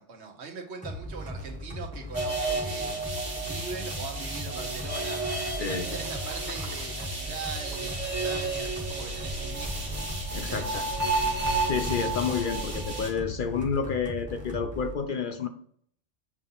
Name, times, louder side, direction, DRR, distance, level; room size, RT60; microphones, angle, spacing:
voice 1, 0.0-5.2 5.6-10.0 10.3-11.1, right 5 dB, 70° right, 2 dB, 1.3 m, -41 dB
sound 1, 0.8-14.9, equal, 5° left, 0.9 m, -38 dB
sound 2, 2.1-13.1, right 3 dB, 35° right, 1.4 m, -32 dB
sound 3, 2.5-12.9, equal, 20° right, 0.7 m, -43 dB
voice 2, 10.3-10.7 11.6-15.5, left 6 dB, 60° left, 7 dB, 0.6 m, -29 dB
7.4 x 2.7 x 5.4 m, 0.63 s
omnidirectional pair, 1.2 m